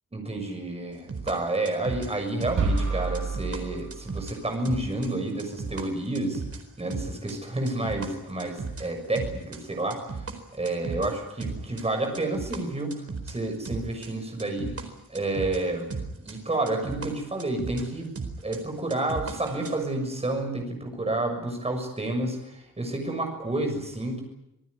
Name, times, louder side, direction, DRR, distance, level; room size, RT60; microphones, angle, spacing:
voice 1, 0.1-6.4 6.8-15.9 16.2-18.1 18.4-24.2, right 2 dB, 20° right, 3 dB, 6.7 m, -30 dB
sound 1, 1.1-5.9 6.1-8.9 9.2-10.4 10.7-12.6 12.9-14.9 15.1-17.9 18.2-19.8, right 4 dB, 40° right, 4.3 m, -36 dB
sound 2, 2.6-4.6, right 3 dB, 65° right, 6.9 m, -29 dB
27.0 x 19.0 x 9.8 m, 0.85 s
wide cardioid pair, 175°, 34 cm